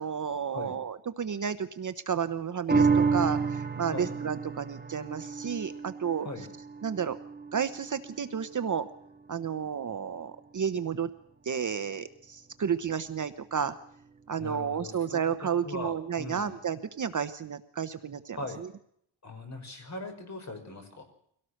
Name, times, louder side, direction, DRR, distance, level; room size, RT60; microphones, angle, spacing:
voice 1, 0.0-6.3 6.8-7.2 7.5-8.9 9.3-11.1 11.4-13.8 14.3-18.7, right 7 dB, 40° right, 11 dB, 0.9 m, -32 dB
sound 1, 2.7-9.4 9.8-9.9, right 4 dB, 20° right, 1.7 m, -30 dB
voice 2, 14.4-16.6 18.3-18.6 19.2-21.0, left 2 dB, 35° left, 4 dB, 5.4 m, -40 dB
24.0 x 17.5 x 6.5 m, 0.68 s
wide cardioid pair, 155°, 48 cm